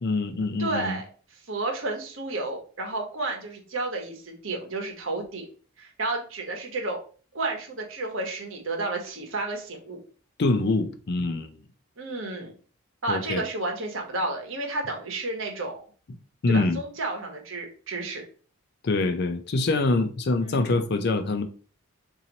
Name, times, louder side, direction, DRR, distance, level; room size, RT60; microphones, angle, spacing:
voice 1, 0.0-1.0 10.4-11.6 13.1-13.4 16.4-16.8 18.8-21.4, left 3 dB, 45° left, 0.4 m, -25 dB
voice 2, 0.6-1.1 1.5-5.5 5.8-7.0 7.3-10.0 12.0-12.5 13.0-15.8 16.5-18.2 20.4-20.8, right 2 dB, 60° right, 1.1 m, -31 dB
3.0 x 2.8 x 3.9 m
head